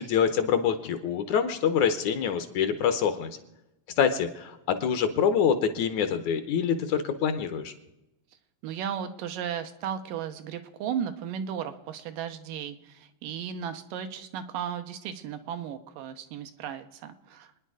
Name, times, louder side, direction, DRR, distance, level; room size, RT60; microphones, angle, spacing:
voice 1, 0.0-3.4 4.0-7.7, left 7 dB, 70° left, 9 dB, 2.1 m, -25 dB
voice 2, 8.6-17.5, right 8 dB, 85° right, 8 dB, 2.6 m, -35 dB
26.5 x 10.0 x 4.8 m, 0.95 s
omnidirectional pair, 3.9 m